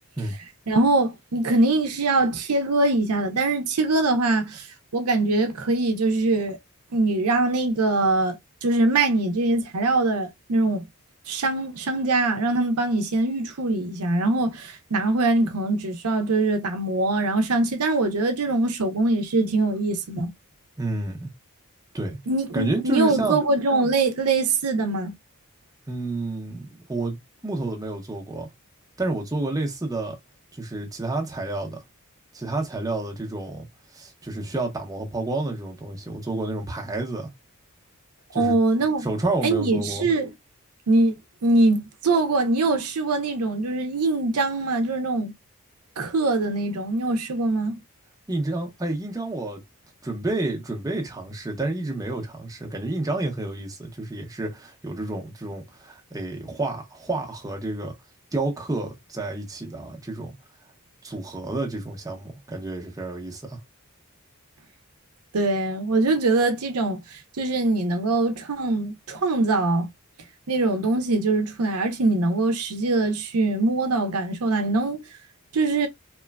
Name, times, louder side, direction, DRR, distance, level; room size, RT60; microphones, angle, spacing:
voice 1, 0.7-4.7 4.9-6.6 6.9-10.8 11.3-20.3 22.3-25.1 38.3-39.1 39.4-40.3 40.9-45.3 46.0-47.8 65.3-69.9 70.5-75.0 75.5-75.9, right 2 dB, 80° right, 0.6 m, -23 dB
voice 2, 20.8-21.3 21.9-22.2 22.5-23.4 25.9-27.2 27.4-28.5 29.0-30.2 30.5-31.8 32.3-33.7 33.9-37.3 38.3-38.6 39.0-40.1 48.3-49.6 50.0-57.9 58.3-60.3 61.0-63.6, right 2 dB, 15° right, 0.7 m, -29 dB
3.0 x 2.2 x 2.2 m
head